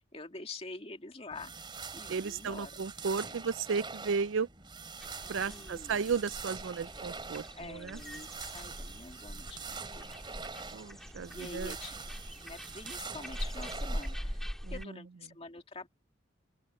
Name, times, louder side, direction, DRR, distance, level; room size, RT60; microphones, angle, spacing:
voice 1, 0.0-1.5 1.9-2.7 3.2-3.4 5.5-6.0 7.6-10.1 11.3-12.0 12.4-14.4 14.7-15.9, left 3 dB, 30° left, 2.2 m, -46 dB
sound 1, 1.3-14.5, right 4 dB, 25° right, 3.2 m, -45 dB
voice 2, 2.1-4.5 5.3-8.0 10.7-11.7 14.6-15.0, right 5 dB, 90° right, 0.5 m, -34 dB
sound 2, 5.0-14.8, equal, ahead, 3.1 m, -43 dB
open air
head